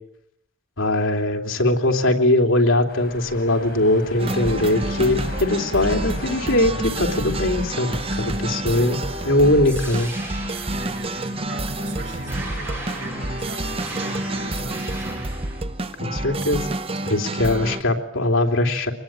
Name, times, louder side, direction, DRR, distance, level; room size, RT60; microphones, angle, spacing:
voice 1, 0.8-9.0 9.2-10.1 16.0-16.7 17.0-18.9, left 1 dB, 90° left, 3 dB, 3.2 m, -21 dB
sound 1, 2.9-14.6, left 2 dB, 55° left, 7.2 m, -39 dB
sound 2, 4.2-17.8, right 1 dB, 30° right, 1.0 m, -29 dB
sound 3, 9.6-15.6, right 2 dB, 10° right, 6.2 m, -38 dB
voice 2, 10.7-15.3 17.3-17.8, right 2 dB, 75° right, -1 dB, 7.0 m, -38 dB
25.0 x 21.0 x 9.0 m, 0.75 s
head